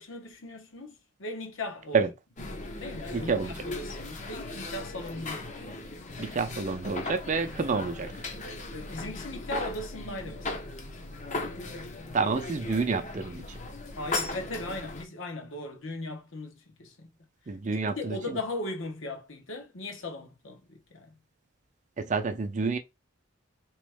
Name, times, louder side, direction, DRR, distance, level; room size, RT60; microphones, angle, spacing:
voice 1, 0.0-2.0 2.5-5.5 8.7-10.7 13.9-17.1 17.7-21.1, left 2 dB, 70° left, 1.1 m, -38 dB
sound 1, 2.4-15.0, left 2 dB, 35° left, 0.7 m, -38 dB
voice 2, 3.1-3.5 6.2-8.1 12.1-13.6 17.5-18.4 22.0-22.8, right 4 dB, 35° right, 0.5 m, -28 dB
3.5 x 3.0 x 3.4 m
head